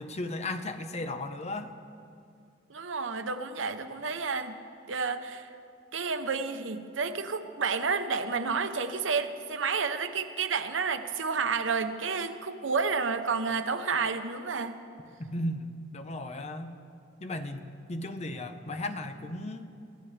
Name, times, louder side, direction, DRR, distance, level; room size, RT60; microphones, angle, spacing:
voice 1, 0.0-1.7 15.2-16.7 17.2-19.7, left 1 dB, 35° left, 7 dB, 0.9 m, -35 dB
voice 2, 2.7-4.6 4.9-5.5 5.9-14.8, right 5 dB, 90° right, 8 dB, 0.9 m, -30 dB
24.5 x 16.5 x 3.4 m, 2.4 s
head